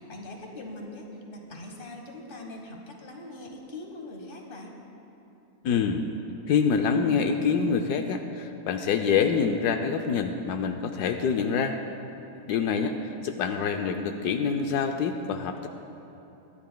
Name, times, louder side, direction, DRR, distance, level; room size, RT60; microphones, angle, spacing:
voice 1, 0.0-4.7 12.3-12.5, left 1 dB, 35° left, 1 dB, 1.4 m, -42 dB
voice 2, 5.6-6.0 6.5-11.8 12.5-15.7, left 6 dB, 80° left, 5 dB, 1.1 m, -26 dB
23.0 x 10.5 x 2.2 m, 2.9 s
omnidirectional pair, 1.7 m